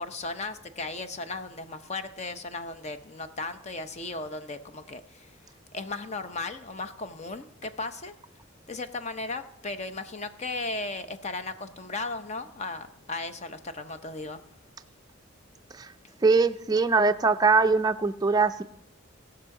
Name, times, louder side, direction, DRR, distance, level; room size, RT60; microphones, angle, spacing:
voice 1, 0.0-5.4 5.7-8.1 8.7-14.4, left 3 dB, 35° left, 10 dB, 0.7 m, -36 dB
voice 2, 16.2-18.6, right 4 dB, 20° right, 9 dB, 0.4 m, -22 dB
18.5 x 6.1 x 4.8 m, 0.75 s
head